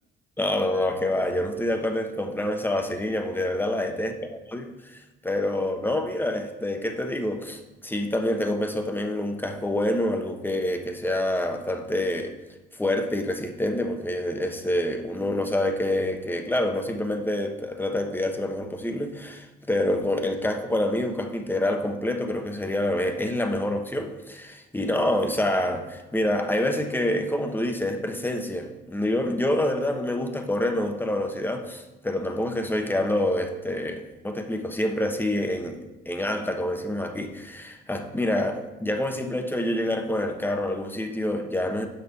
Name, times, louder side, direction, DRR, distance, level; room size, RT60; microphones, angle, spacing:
voice 1, 0.4-4.2 4.5-12.3 12.8-41.9, left 1 dB, 10° left, 5 dB, 1.0 m, -27 dB
6.6 x 5.5 x 5.3 m, 1.1 s
cardioid pair, 90°, 20 cm